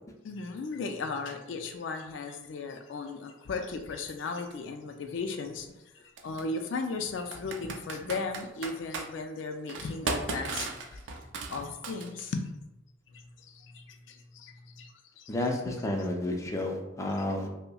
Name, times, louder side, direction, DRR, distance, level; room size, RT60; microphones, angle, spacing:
voice 1, 0.2-11.0 11.5-12.5 13.1-15.3 15.6-15.7, left 4 dB, 75° left, 5 dB, 0.4 m, -36 dB
Computer keyboard, 4.5-4.6 6.2-6.4 7.3-9.1 9.7-12.4, right 3 dB, 70° right, 0.5 m, -35 dB
voice 2, 15.3-17.5, left 1 dB, 15° left, 1 dB, 0.5 m, -31 dB
5.3 x 2.1 x 2.3 m, 0.93 s
head